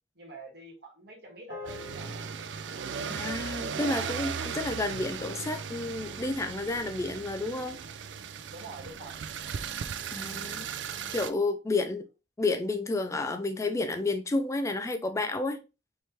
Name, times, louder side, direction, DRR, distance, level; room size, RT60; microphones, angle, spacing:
voice 1, 0.1-2.1 8.5-9.2, right 2 dB, 60° right, 1.6 m, -46 dB
sound 1, 1.5-6.0, left 3 dB, 80° left, 1.7 m, -50 dB
sound 2, 1.7-11.3, right 6 dB, 85° right, 0.4 m, -37 dB
voice 2, 3.1-7.8 10.1-10.7 11.1-12.1 12.4-15.6, left 2 dB, 15° left, 0.3 m, -31 dB
4.5 x 3.4 x 2.9 m
head